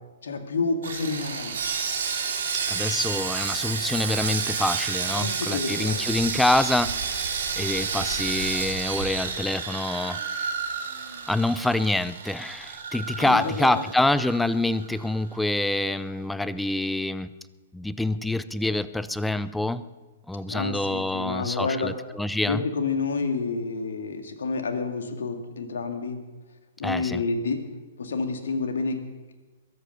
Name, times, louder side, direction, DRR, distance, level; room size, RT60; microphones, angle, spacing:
voice 1, 0.2-1.6 5.2-6.0 13.2-13.8 20.5-22.0 22.4-26.2 26.8-27.6 28.0-29.0, left 4 dB, 70° left, 6 dB, 2.0 m, -29 dB
Sawing, 0.8-15.1 15.3-15.5 16.0-16.1, right 6 dB, 65° right, 2.7 m, -30 dB
voice 2, 2.7-10.5 11.3-17.3 17.7-19.8 20.3-22.6 26.8-27.2, left 2 dB, 5° left, 15 dB, 0.6 m, -26 dB
22.0 x 8.3 x 6.8 m, 1.3 s
figure-of-eight pair, 115°, 0 cm